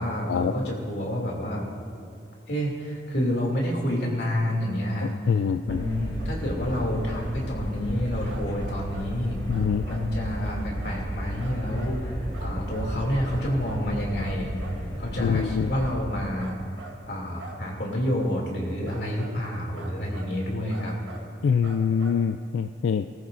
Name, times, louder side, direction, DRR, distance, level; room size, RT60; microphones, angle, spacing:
voice 1, 0.0-1.6 2.5-5.1 5.7-9.4 9.9-12.0 12.4-14.5 15.0-16.6 17.1-20.9, equal, 65° left, -2 dB, 2.6 m, -28 dB
voice 2, 5.0-5.8 9.5-9.9 15.2-15.7 21.4-23.1, left 6 dB, 90° left, 9 dB, 0.3 m, -25 dB
sound 1, 5.7-16.0, equal, 25° left, 2.7 m, -33 dB
sound 2, 6.2-6.3 6.7-7.3 8.3-9.1 9.5-10.1 10.4-11.0 11.4-12.0 12.3-12.9 13.2-13.9 14.2-14.8 15.2-15.4 15.8-16.0 16.4-17.0 17.4-17.6 18.8-19.3 19.7-20.3 20.7-21.3 21.6-22.2, right 2 dB, 85° right, 1.5 m, -44 dB
18.5 x 14.0 x 2.6 m, 2.5 s
head